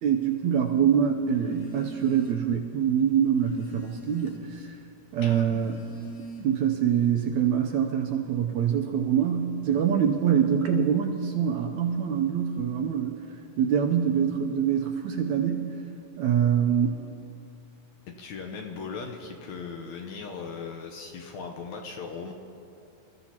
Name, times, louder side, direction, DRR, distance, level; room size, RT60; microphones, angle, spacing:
voice 1, 0.0-4.8 5.1-5.8 6.4-13.1 13.6-15.7 16.2-17.0, right 8 dB, 75° right, 2 dB, 1.8 m, -25 dB
Telephone, 1.4-2.6 3.0-4.6 5.3-6.8, equal, 50° left, 1.2 m, -43 dB
voice 2, 18.1-22.3, left 5 dB, 70° left, 2 dB, 1.9 m, -38 dB
26.5 x 14.0 x 2.9 m, 2.7 s
omnidirectional pair, 3.9 m